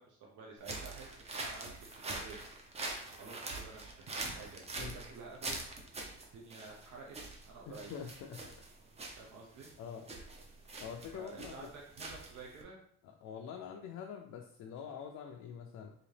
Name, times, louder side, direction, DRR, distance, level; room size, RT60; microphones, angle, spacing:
voice 1, 0.0-2.4 3.2-5.6 6.3-7.2 7.4-7.9 9.2-9.7 11.1-12.8, right 4 dB, 80° right, -2 dB, 0.8 m, -50 dB
sound 1, 0.6-12.6, right 2 dB, 20° right, 0.4 m, -44 dB
voice 2, 7.7-8.4 9.8-10.1 10.8-11.5 13.0-15.9, left 7 dB, 65° left, 1 dB, 0.5 m, -45 dB
4.0 x 2.7 x 3.2 m, 0.64 s
cardioid pair, 180°, 29 cm